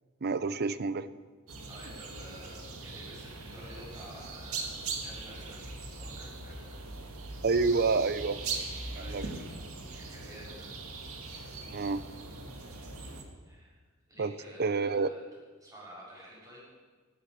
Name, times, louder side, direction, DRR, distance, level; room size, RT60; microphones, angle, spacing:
voice 1, 0.2-1.1 7.4-8.4 9.0-9.2 11.7-12.0 14.2-14.3 14.6-15.1, right 4 dB, 45° right, 14 dB, 0.6 m, -28 dB
sound 1, 1.5-13.2, right 3 dB, 70° right, 2.0 m, -41 dB
voice 2, 1.7-5.6 5.9-6.8 7.6-7.9 8.9-9.4 9.9-10.7 11.3-11.5 13.4-13.7 14.1-15.2 15.6-16.6, equal, 15° right, -6 dB, 6.6 m, -50 dB
17.0 x 11.5 x 6.5 m, 1.4 s
head